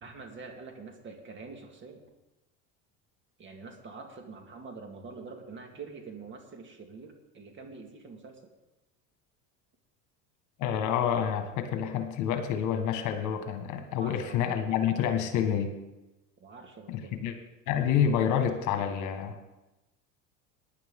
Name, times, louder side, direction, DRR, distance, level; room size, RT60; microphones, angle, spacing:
voice 1, 0.0-2.0 3.4-8.5 13.9-14.6 16.4-17.2, right 4 dB, 35° right, 4 dB, 2.0 m, -45 dB
voice 2, 10.6-15.7 16.9-17.3 17.7-19.4, left 8 dB, 60° left, 6 dB, 1.7 m, -28 dB
17.5 x 10.5 x 3.8 m, 1.0 s
supercardioid pair, 125°, 34 cm